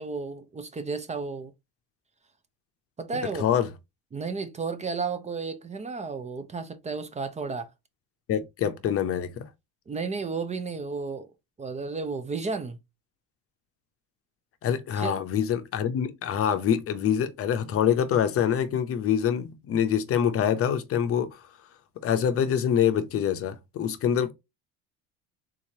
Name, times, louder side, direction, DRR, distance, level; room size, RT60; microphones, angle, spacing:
voice 1, 0.0-1.5 3.0-3.4 4.1-7.7 9.9-11.3 11.6-12.8 15.0-15.1, right 4 dB, 20° right, 0.6 m, -33 dB
voice 2, 3.4-3.7 8.3-9.5 14.6-21.4 22.0-24.3, left 8 dB, 45° left, 0.7 m, -25 dB
3.8 x 2.9 x 2.7 m
supercardioid pair, 100°, 31 cm